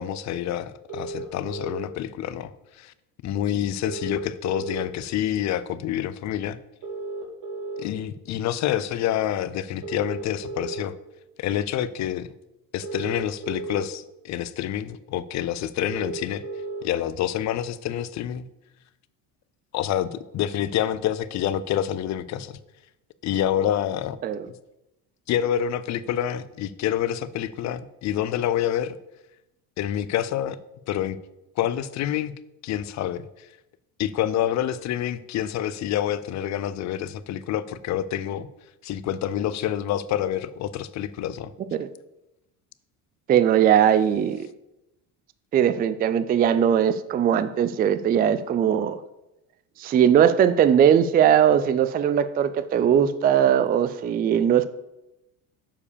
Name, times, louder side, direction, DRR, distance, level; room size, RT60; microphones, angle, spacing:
voice 1, 0.0-2.5 2.8-2.9 3.2-6.6 7.8-10.9 11.4-12.3 12.7-16.4 16.8-18.4 19.7-22.6 23.2-24.2 25.3-28.9 29.8-30.6 30.9-31.2 31.6-32.3 32.6-33.5 34.0-38.5 38.8-41.5, left 11 dB, 45° left, 0.5 m, -27 dB
sound 1, 0.9-1.9 3.8-4.9 6.8-7.8 9.8-10.8 12.8-13.8 15.8-16.8, right 3 dB, 55° right, 2.4 m, -34 dB
voice 2, 43.3-44.5 45.5-49.0 49.8-54.7, right 9 dB, 25° right, 0.3 m, -20 dB
7.2 x 4.8 x 6.8 m
cardioid pair, 120°, 38 cm